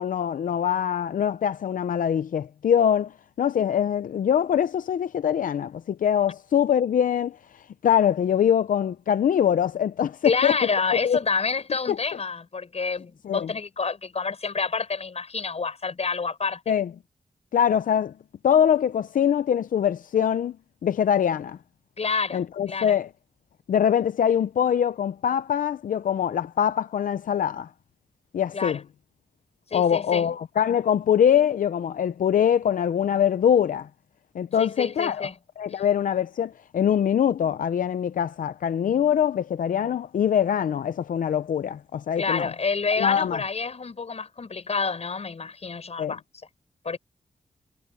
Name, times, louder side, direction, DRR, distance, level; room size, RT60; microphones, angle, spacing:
voice 1, 0.0-10.6 10.9-11.2 11.9-12.0 13.2-13.5 16.7-16.9 17.5-18.1 18.4-20.5 20.8-21.6 22.3-23.1 23.7-27.7 28.3-28.8 29.7-33.9 34.3-35.3 35.6-42.5 43.0-43.4 46.0-46.1, left 9 dB, 90° left, 0.5 m, -23 dB
voice 2, 10.2-16.6 22.0-22.4 22.7-23.0 28.5-28.8 29.7-30.3 34.6-35.3 35.7-35.8 42.2-46.2 46.8-47.0, left 4 dB, 50° left, 7.6 m, -28 dB
wide cardioid pair, 110°, 14 cm